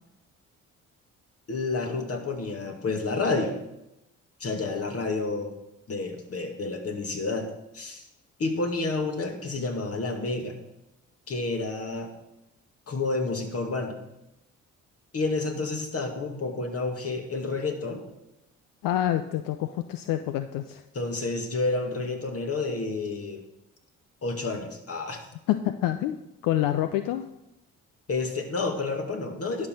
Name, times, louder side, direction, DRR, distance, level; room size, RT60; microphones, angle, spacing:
voice 1, 1.5-3.6 4.4-5.5 5.9-7.5 7.7-8.0 8.4-10.5 11.3-12.1 12.9-14.0 15.1-18.0 20.9-23.4 24.2-25.2 28.1-29.7, left 3 dB, 45° left, 4 dB, 2.2 m, -29 dB
voice 2, 18.8-20.8 25.5-26.2 26.4-27.3, left 13 dB, 80° left, 10 dB, 0.6 m, -27 dB
11.0 x 5.9 x 6.6 m, 0.88 s
supercardioid pair, 60°, 33 cm